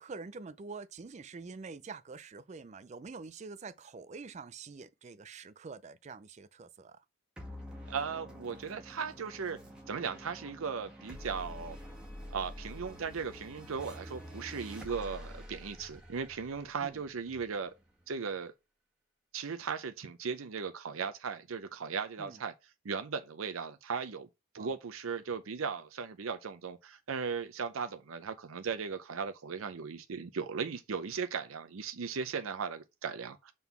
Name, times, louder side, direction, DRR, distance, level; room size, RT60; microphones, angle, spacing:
voice 1, 0.0-7.0 16.8-17.0 22.2-22.4 24.6-24.7, right 4 dB, 35° right, 0.4 m, -46 dB
sound 1, 7.4-18.1, equal, 5° right, 1.7 m, -48 dB
voice 2, 7.9-9.6 9.9-11.8 12.3-17.7 18.1-18.5 19.3-22.5 22.8-24.3 24.5-33.5, right 5 dB, 80° right, 0.6 m, -37 dB
5.5 x 3.9 x 5.9 m
head